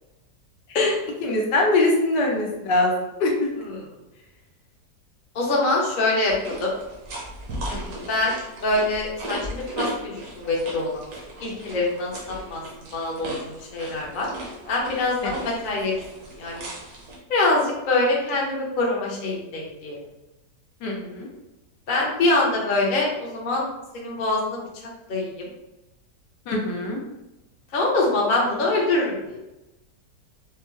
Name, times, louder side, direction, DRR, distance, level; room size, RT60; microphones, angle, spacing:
voice 1, 1.2-3.6 7.7-8.1 15.2-15.3 20.8-21.3 26.5-27.0, left 2 dB, 80° left, -1 dB, 1.4 m, -23 dB
voice 2, 5.3-6.7 8.1-8.4 8.6-11.1 11.4-12.1 12.5-12.6 12.9-14.3 14.7-16.0 16.4-16.6 17.3-20.0 21.9-23.6 23.9-24.6 25.1-25.5 27.7-29.4, left 2 dB, 40° left, -3 dB, 0.7 m, -24 dB
sound 1, 6.3-17.2, right 1 dB, 65° right, 1.3 m, -37 dB
4.6 x 2.1 x 3.0 m, 0.97 s
omnidirectional pair, 1.8 m